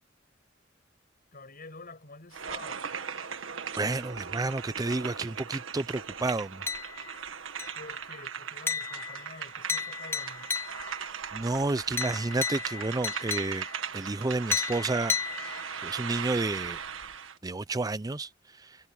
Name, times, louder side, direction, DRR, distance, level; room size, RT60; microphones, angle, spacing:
voice 1, 1.3-2.9 7.7-10.5, left 3 dB, 50° left, 6.2 m, -48 dB
sound 1, 2.3-17.4, right 7 dB, 90° right, 1.6 m, -38 dB
voice 2, 3.8-6.6 11.3-13.6 13.9-16.8 17.4-18.8, right 2 dB, 20° right, 0.5 m, -31 dB
sound 2, 6.7-7.2 7.6-8.0 8.7-11.1 12.0-13.9 14.5-15.9, left 6 dB, 10° left, 1.3 m, -34 dB
head